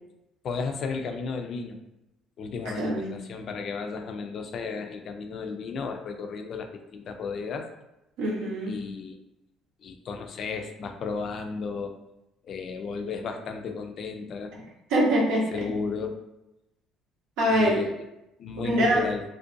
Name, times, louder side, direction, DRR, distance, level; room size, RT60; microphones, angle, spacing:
voice 1, 0.4-1.8 2.4-7.7 8.7-9.2 9.8-11.9 12.4-14.5 15.5-16.2 17.5-17.9 18.4-19.2, left 5 dB, 55° left, 6 dB, 0.3 m, -34 dB
voice 2, 2.8-3.1 8.2-8.7 14.9-15.4 17.4-17.9 18.6-19.0, equal, 85° right, -4 dB, 0.6 m, -23 dB
2.5 x 2.2 x 2.5 m, 0.91 s
cardioid pair, 100°, 0 cm